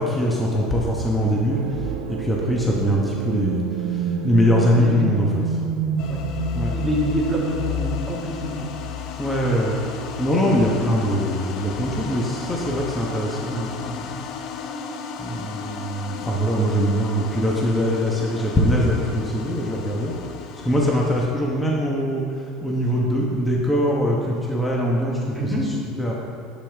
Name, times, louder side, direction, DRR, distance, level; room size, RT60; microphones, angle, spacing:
voice 1, 0.0-5.6 6.5-6.7 9.1-9.8 10.2-14.2 15.2-20.1 20.6-26.1, equal, 10° left, -3 dB, 1.1 m, -22 dB
sound 1, 1.5-9.2, right 6 dB, 90° right, 0.7 m, -29 dB
sound 2, 6.0-21.3, left 7 dB, 55° left, 0.6 m, -34 dB
voice 2, 6.6-8.7 25.4-25.7, equal, 10° right, -4 dB, 2.0 m, -26 dB
9.9 x 8.3 x 3.5 m, 2.7 s
supercardioid pair, 115°, 0 cm